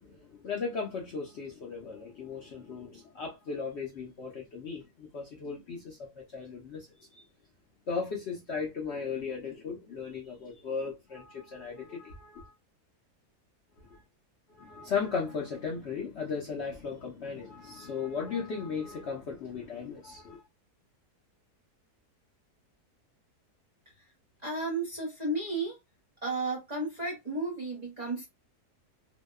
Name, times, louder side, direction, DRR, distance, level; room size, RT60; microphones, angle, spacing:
voice 1, 0.0-7.2 7.9-12.5 13.8-14.0 14.5-20.4, left 5 dB, 60° left, 0.7 m, -36 dB
voice 2, 24.4-25.8 26.2-28.3, right 2 dB, 40° right, 0.6 m, -33 dB
2.7 x 2.1 x 2.2 m
omnidirectional pair, 1.7 m